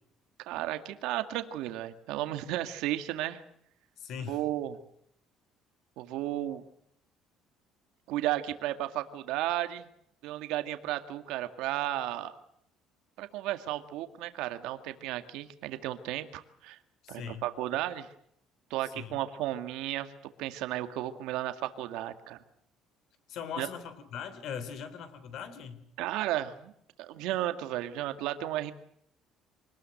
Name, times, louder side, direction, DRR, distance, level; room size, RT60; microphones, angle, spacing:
voice 1, 0.5-3.4 4.3-4.8 6.0-6.6 8.1-9.9 10.2-12.3 13.2-16.8 17.1-18.1 18.7-20.1 20.4-22.4 23.6-23.7 26.0-26.7 27.0-28.7, right 14 dB, 80° right, 9 dB, 1.9 m, -33 dB
voice 2, 4.0-4.4 17.0-17.5 18.9-19.2 23.3-25.8, left 7 dB, 50° left, 12 dB, 3.5 m, -40 dB
25.0 x 19.5 x 7.9 m, 0.71 s
cardioid pair, 180°, 0 cm